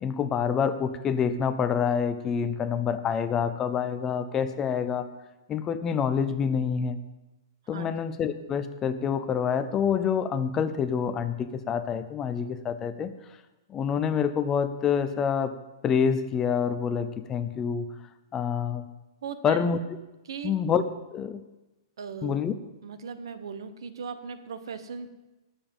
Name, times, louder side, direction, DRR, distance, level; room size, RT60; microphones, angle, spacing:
voice 1, 0.0-5.1 5.5-7.0 7.7-13.1 13.7-15.5 15.8-17.9 18.3-18.9 19.4-19.8 20.4-20.8 21.1-21.4 22.2-22.5, left 7 dB, 15° left, 11 dB, 0.5 m, -27 dB
voice 2, 19.2-19.7 20.3-20.5 22.0-22.4 22.8-25.1, right 6 dB, 85° right, 10 dB, 1.2 m, -38 dB
18.5 x 7.1 x 5.5 m, 1.0 s
hypercardioid pair, 165°, 2 cm